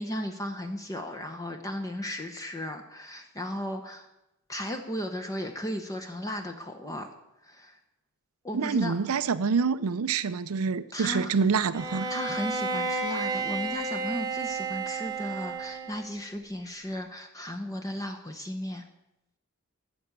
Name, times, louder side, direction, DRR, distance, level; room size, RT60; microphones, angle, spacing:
voice 1, 0.0-4.1 4.5-7.1 7.4-7.8 8.4-8.9 10.9-11.3 12.1-18.8, equal, 15° left, 0.9 m, -35 dB
voice 2, 8.5-12.1, right 5 dB, 75° right, 0.5 m, -26 dB
Bowed string instrument, 11.7-16.2, right 4 dB, 20° right, 1.1 m, -32 dB
13.0 x 7.0 x 8.8 m
head